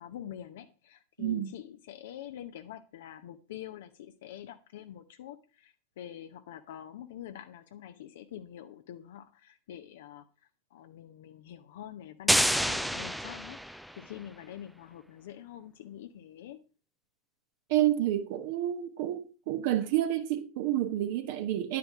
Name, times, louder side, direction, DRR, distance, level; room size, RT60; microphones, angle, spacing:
voice 1, 0.0-10.3 10.7-16.6, left 10 dB, 55° left, 0.8 m, -46 dB
voice 2, 1.2-1.5 17.7-21.8, right 12 dB, 50° right, 1.0 m, -29 dB
sound 1, 12.3-14.1, equal, ahead, 0.5 m, -28 dB
10.5 x 8.5 x 4.8 m
figure-of-eight pair, 90°, 0 cm